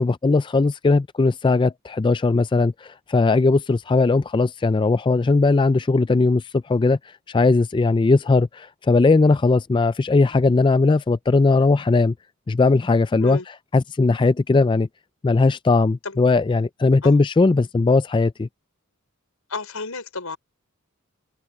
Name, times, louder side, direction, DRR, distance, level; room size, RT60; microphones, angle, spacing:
voice 1, 0.0-7.0 7.3-12.1 12.5-13.4 13.7-14.9 15.2-18.5, left 3 dB, 20° left, 0.3 m, -18 dB
voice 2, 19.5-20.4, left 3 dB, 85° left, 5.1 m, -31 dB
open air
head